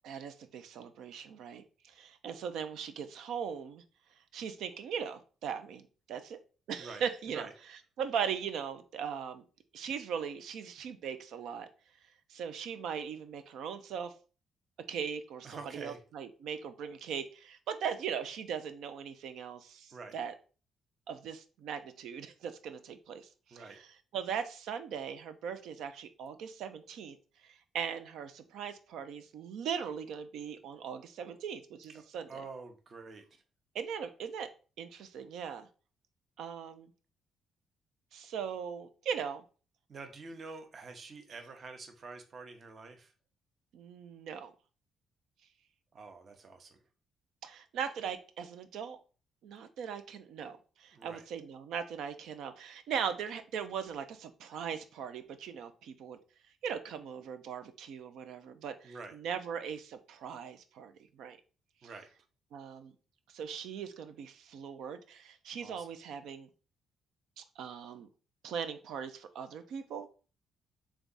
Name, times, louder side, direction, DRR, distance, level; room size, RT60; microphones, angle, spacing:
voice 1, 0.0-3.8 4.3-6.4 6.7-7.5 8.0-9.4 9.7-11.7 12.3-14.1 14.9-20.3 21.1-23.6 24.1-27.2 27.4-32.3 33.7-34.5 34.8-35.7 36.4-36.9 38.1-39.4 43.7-44.5 47.4-49.0 49.4-56.2 56.6-61.4 61.8-61.9 62.5-62.9 63.3-66.5 67.4-68.1 68.4-70.1, right 7 dB, 80° right, 10 dB, 0.5 m, -39 dB
voice 2, 6.8-7.5 15.4-16.0 19.9-20.2 23.5-23.8 31.9-33.3 39.9-43.1 45.9-46.8 50.9-51.2 58.8-59.2 61.8-62.1 65.6-65.9, right 4 dB, 45° right, 6 dB, 0.8 m, -47 dB
3.6 x 3.4 x 4.0 m, 0.36 s
cardioid pair, 90°, 0 cm